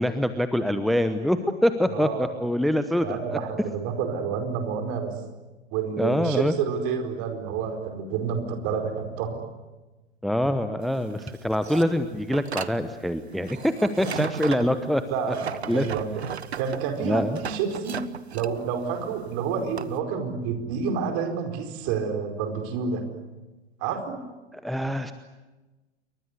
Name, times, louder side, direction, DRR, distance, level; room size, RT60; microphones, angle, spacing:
voice 1, 0.0-3.4 6.0-6.5 10.2-15.0 15.7-15.8 17.0-17.4 24.5-25.1, equal, ahead, 10 dB, 0.9 m, -25 dB
voice 2, 1.9-2.3 3.0-5.1 5.7-9.4 14.4-14.6 15.1-16.2 16.6-18.0 18.3-23.1 23.8-24.2, right 6 dB, 40° right, 5 dB, 4.9 m, -29 dB
sound 1, 10.8-20.0, right 7 dB, 70° right, 1.2 m, -36 dB
28.5 x 23.5 x 8.3 m, 1.1 s
figure-of-eight pair, 95°, 34 cm